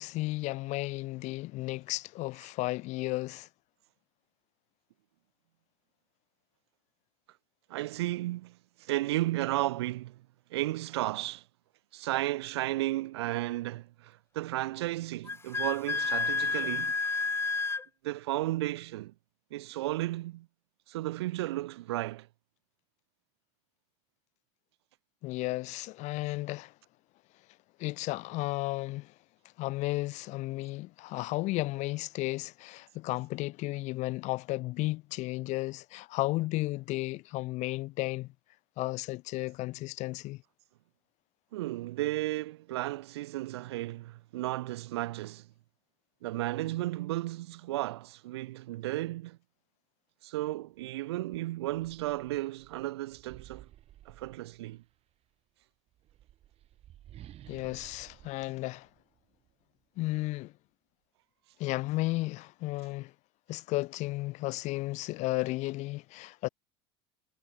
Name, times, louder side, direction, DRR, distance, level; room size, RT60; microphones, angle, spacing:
voice 1, 0.0-3.5 25.2-26.7 27.8-29.1 29.6-38.3 38.8-40.4 57.5-58.9 60.0-60.5 61.6-63.1 63.5-66.5, left 19 dB, 60° left, 4.6 m, -33 dB
voice 2, 7.7-10.2 10.5-11.4 11.9-16.9 18.0-19.1 19.5-20.5 20.9-22.3 41.5-45.5 46.2-49.4 50.2-53.7 54.1-54.8, right 17 dB, 90° right, 2.1 m, -34 dB
Wind instrument woodwind instrument, 15.3-17.8, left 4 dB, 20° left, 3.1 m, -30 dB
Kong Roar complete, 50.7-50.9 51.3-54.9 55.9-59.5, right 12 dB, 50° right, 5.3 m, -54 dB
supercardioid pair, 100°, 13 cm